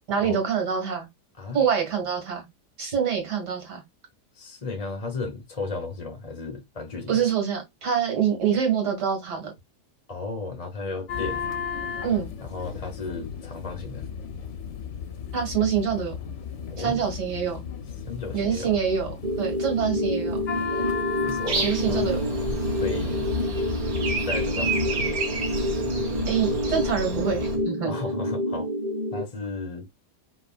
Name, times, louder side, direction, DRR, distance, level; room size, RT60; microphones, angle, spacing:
voice 1, 0.1-1.1 1.5-2.4 2.8-3.8 7.1-9.5 12.0-12.3 15.3-16.1 16.8-17.6 18.3-20.4 21.6-22.2 26.3-27.9, right 7 dB, 80° right, 2.7 m, -25 dB
voice 2, 4.3-7.2 10.1-11.5 12.4-14.0 16.7-17.0 18.1-18.7 21.2-23.4 24.3-25.2 27.8-28.7 29.1-29.9, left 4 dB, 30° left, 0.8 m, -34 dB
sound 1, 11.1-27.6, left 7 dB, 55° left, 0.9 m, -35 dB
sound 2, 19.2-29.2, equal, 25° right, 1.7 m, -28 dB
Breathing, 21.5-27.6, right 4 dB, 60° right, 1.6 m, -31 dB
5.3 x 3.8 x 2.5 m
omnidirectional pair, 1.8 m